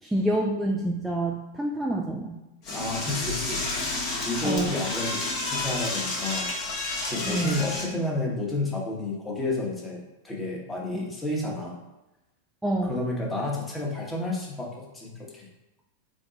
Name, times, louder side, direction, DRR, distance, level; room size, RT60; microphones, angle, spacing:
voice 1, 0.0-2.4 4.4-4.8 7.3-7.7 10.9-11.0 12.6-13.0, right 1 dB, 5° right, -1 dB, 0.3 m, -27 dB
Door / Toilet flush, 2.6-7.9, left 2 dB, 40° left, 0.9 m, -30 dB
voice 2, 2.7-3.6 4.2-6.5 7.1-11.8 12.8-15.5, left 2 dB, 10° left, -3 dB, 1.0 m, -31 dB
3.5 x 2.3 x 3.9 m, 0.99 s
figure-of-eight pair, 90°, 0 cm